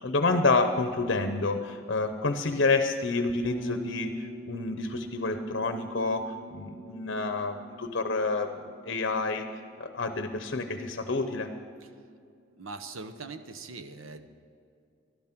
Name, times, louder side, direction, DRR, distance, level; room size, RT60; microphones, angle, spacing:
voice 1, 0.0-8.6 8.9-9.5 9.8-11.5, left 3 dB, 55° left, 8 dB, 0.7 m, -28 dB
Bass guitar, 3.4-11.5, right 1 dB, 30° right, 2.2 m, -46 dB
voice 2, 12.6-14.3, right 3 dB, 75° right, 9 dB, 0.9 m, -41 dB
12.5 x 12.5 x 6.0 m, 2.4 s
head